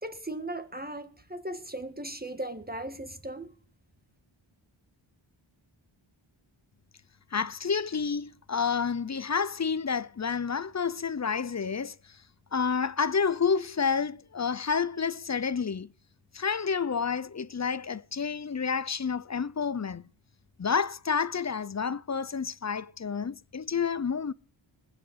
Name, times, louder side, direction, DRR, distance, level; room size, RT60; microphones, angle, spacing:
voice 1, 0.0-3.5, right 1 dB, 20° right, 1.7 m, -37 dB
voice 2, 7.3-12.0 12.5-15.9 16.3-20.0 20.6-24.3, left 6 dB, 35° left, 0.7 m, -29 dB
20.5 x 7.5 x 8.0 m
wide cardioid pair, 60°, 49 cm